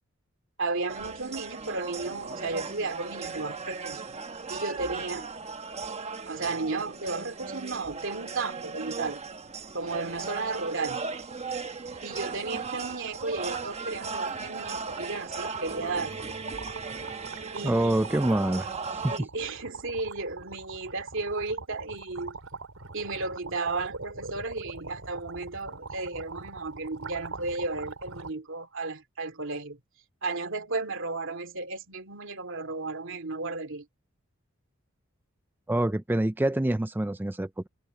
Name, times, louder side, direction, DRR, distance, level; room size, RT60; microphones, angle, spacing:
voice 1, 0.6-4.0 4.5-5.3 6.3-9.2 9.7-11.0 12.0-16.1 17.5-18.0 19.1-22.4 22.9-29.8 30.2-33.9, right 3 dB, 65° right, 2.7 m, -34 dB
sound 1, 0.9-19.2, right 4 dB, 30° right, 1.2 m, -37 dB
sound 2, 9.2-9.4 9.7-9.8 10.1-28.3, right 4 dB, 85° right, 4.4 m, -43 dB
voice 2, 17.6-19.3 35.7-37.7, right 1 dB, 10° right, 0.4 m, -26 dB
head